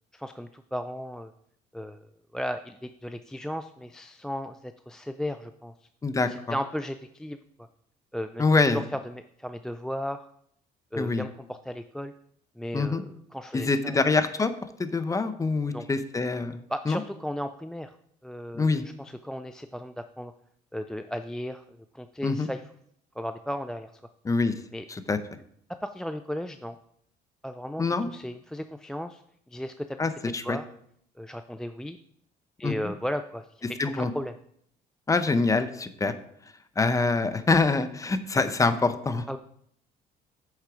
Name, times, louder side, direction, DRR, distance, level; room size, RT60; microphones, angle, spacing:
voice 1, 0.1-1.3 1.7-2.1 2.3-5.9 6.3-7.7 8.1-10.3 10.9-12.1 12.6-14.0 15.7-15.9 16.7-18.0 18.2-20.3 20.7-22.6 23.2-23.9 24.7-24.9 25.8-26.8 27.4-29.2 29.5-30.0 30.4-30.7 31.2-32.0 32.6-34.3 39.3-39.4, equal, 5° left, 9 dB, 0.3 m, -35 dB
voice 2, 8.4-8.8 11.0-11.2 12.7-13.0 13.5-14.5 14.8-16.6 16.9-17.0 18.5-18.8 22.2-22.5 24.2-24.5 24.9-25.2 27.8-28.1 30.0-30.6 32.6-32.7 33.8-34.1 35.1-36.1 36.8-39.4, left 3 dB, 20° left, 11 dB, 0.7 m, -25 dB
8.3 x 6.5 x 4.9 m, 0.69 s
cardioid pair, 110°, 17 cm